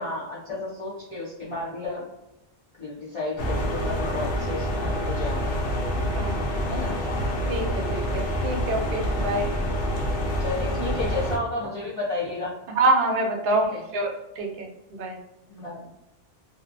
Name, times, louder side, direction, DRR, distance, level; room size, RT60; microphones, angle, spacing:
voice 1, 0.0-2.0 2.8-5.7 6.7-7.0 10.4-12.6 13.5-13.8 15.5-15.9, left 2 dB, 40° left, -6 dB, 0.4 m, -32 dB
sound 1, 3.4-11.4, equal, 80° left, 0.9 m, -27 dB
voice 2, 6.1-6.7 7.5-9.5 12.8-15.2, right 2 dB, 60° right, 2 dB, 0.7 m, -26 dB
2.7 x 2.1 x 2.5 m, 0.94 s
omnidirectional pair, 1.2 m